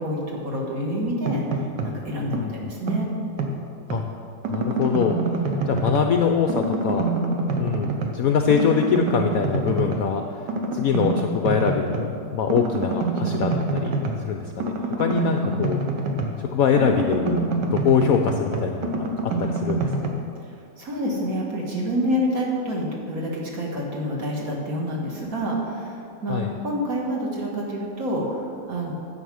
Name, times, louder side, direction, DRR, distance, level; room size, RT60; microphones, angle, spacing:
voice 1, 0.0-3.1 20.8-28.9, equal, 50° right, -2 dB, 2.1 m, -28 dB
sound 1, 1.0-2.0 2.3-4.1 4.4-6.2 6.5-8.2 8.5-10.1 10.5-12.1 12.5-16.5 16.8-20.1, right 3 dB, 70° right, 1.6 m, -26 dB
voice 2, 4.5-5.2 5.7-7.0 7.6-10.2 10.7-13.9 14.2-15.8 16.4-20.2 26.3-26.5, left 7 dB, 70° left, 4 dB, 0.8 m, -23 dB
9.9 x 7.3 x 6.3 m, 2.4 s
omnidirectional pair, 2.0 m